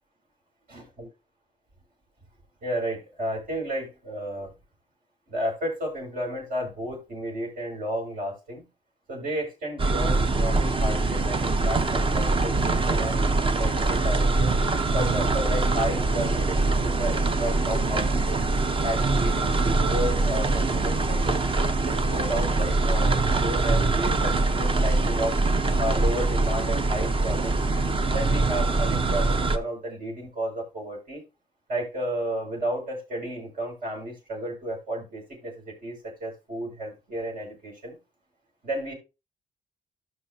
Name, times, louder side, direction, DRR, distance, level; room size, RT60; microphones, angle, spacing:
voice 1, 0.7-1.1 2.6-4.5 5.3-8.7 9.1-13.2 13.6-14.5 14.9-18.5 18.8-21.5 21.8-25.4 25.8-27.6 28.1-31.2 31.7-38.0 38.6-38.9, right 1 dB, 65° right, -1 dB, 6.0 m, -32 dB
sound 1, 9.8-29.6, right 3 dB, 35° right, 0.8 m, -23 dB
13.5 x 5.8 x 2.7 m, 0.27 s
cardioid pair, 70°, 15 cm